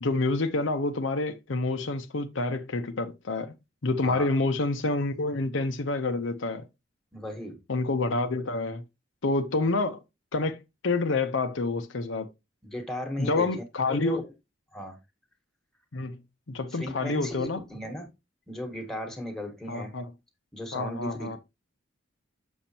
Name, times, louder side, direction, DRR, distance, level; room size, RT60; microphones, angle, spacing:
voice 1, 0.0-3.5 3.8-6.6 7.7-8.8 9.2-10.0 10.3-10.6 10.8-12.3 13.2-14.2 15.9-16.2 16.5-17.6 19.7-20.1 20.7-21.4, left 3 dB, 70° left, 0.8 m, -28 dB
voice 2, 7.1-7.6 12.6-13.5 13.9-14.2 14.7-15.0 16.7-18.1 18.5-19.9 20.5-21.4, left 1 dB, ahead, 1.4 m, -36 dB
7.0 x 6.4 x 2.8 m
head